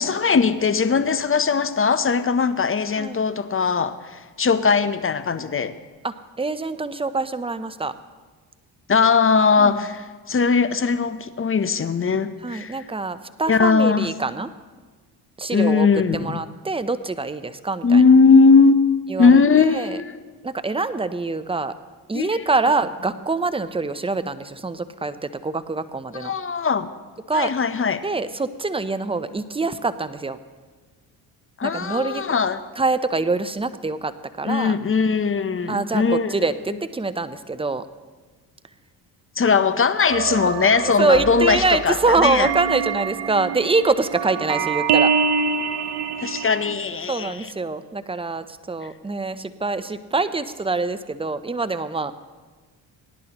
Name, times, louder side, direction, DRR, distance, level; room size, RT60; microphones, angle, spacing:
voice 1, 0.0-5.7 8.9-12.8 13.5-14.1 15.5-16.4 17.8-18.8 19.2-20.1 22.1-22.4 26.1-26.9 27.3-28.0 31.6-32.6 34.4-36.3 39.4-42.5 46.2-47.5, left 5 dB, 25° left, 12 dB, 0.7 m, -19 dB
voice 2, 6.0-7.9 9.6-9.8 12.4-14.5 15.4-15.9 16.1-18.0 19.1-20.0 20.4-21.7 22.1-26.3 27.3-27.5 28.0-30.4 31.6-32.2 32.8-34.8 35.7-37.8 40.3-40.5 40.8-45.1 47.1-52.1, right 3 dB, 10° right, 12 dB, 0.6 m, -25 dB
sound 1, 40.1-46.7, right 6 dB, 50° right, 0.8 m, -25 dB
sound 2, 41.1-43.3, right 5 dB, 35° right, 1.3 m, -39 dB
18.0 x 11.0 x 3.0 m, 1.4 s
supercardioid pair, 60°, 50 cm